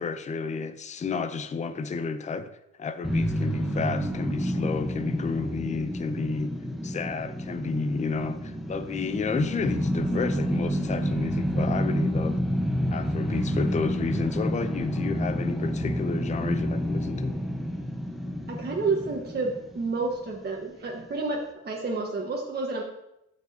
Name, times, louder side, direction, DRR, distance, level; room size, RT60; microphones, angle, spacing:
voice 1, 0.0-2.5 2.8-6.5 6.8-12.4 12.9-17.4, left 4 dB, 25° left, 0.5 m, -31 dB
sound 1, 3.0-20.2, equal, ahead, 0.9 m, -29 dB
voice 2, 18.5-22.8, right 3 dB, 35° right, 1.3 m, -30 dB
13.5 x 4.7 x 2.7 m
cardioid pair, 90°, 30 cm